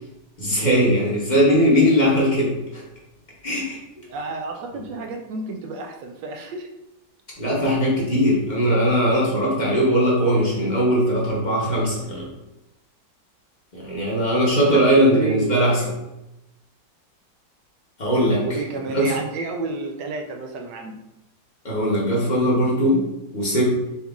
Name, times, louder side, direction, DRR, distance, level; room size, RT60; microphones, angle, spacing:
voice 1, 0.4-2.8 3.4-3.8 7.4-12.3 13.7-15.7 18.0-18.4 18.8-19.1 21.6-23.0 23.3-23.6, equal, 35° left, -5 dB, 0.8 m, -19 dB
voice 2, 4.1-6.7 14.6-15.9 18.4-21.0, right 3 dB, 85° right, 3 dB, 1.2 m, -30 dB
4.1 x 2.4 x 3.5 m, 0.93 s
omnidirectional pair, 1.9 m